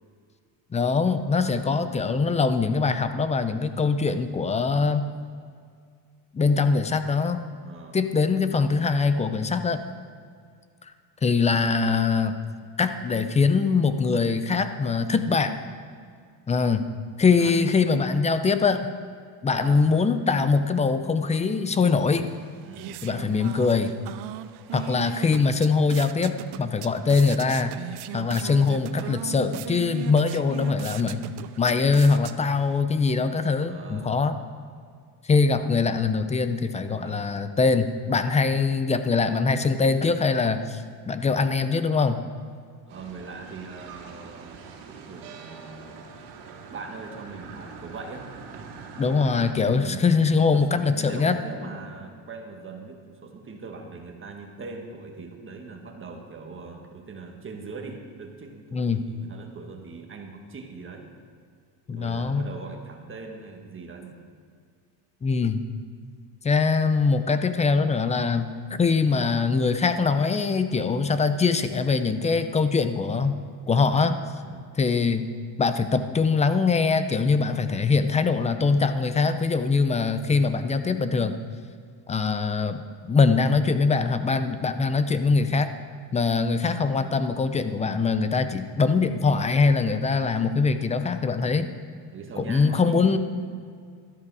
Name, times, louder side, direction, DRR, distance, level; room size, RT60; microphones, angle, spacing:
voice 1, 0.7-5.1 6.3-7.4 7.9-9.8 11.2-12.4 12.8-15.5 16.5-16.8 17.2-18.8 19.4-22.3 23.0-23.9 24.7-27.8 28.1-31.2 31.6-34.4 35.3-42.2 49.0-51.4 58.7-59.0 61.9-62.5 65.2-65.6 66.4-68.5 68.8-74.2 74.8-75.3 75.6-81.3 82.1-85.7 86.1-91.7 92.4-93.2, left 4 dB, 15° left, 10 dB, 0.5 m, -23 dB
voice 2, 1.5-1.9 7.6-8.0 17.4-17.6 19.5-19.9 22.6-23.1 33.6-34.2 36.9-37.3 42.9-45.9 46.7-48.3 49.7-50.0 50.5-61.1 61.9-64.2 74.4-74.8 92.1-93.2, right 4 dB, 25° right, 3 dB, 1.6 m, -41 dB
sound 1, 22.3-32.8, right 13 dB, 55° right, 0.7 m, -39 dB
sound 2, 42.9-49.5, right 5 dB, 80° right, 2.3 m, -43 dB
13.0 x 12.0 x 4.8 m, 2.2 s
cardioid pair, 125°, 48 cm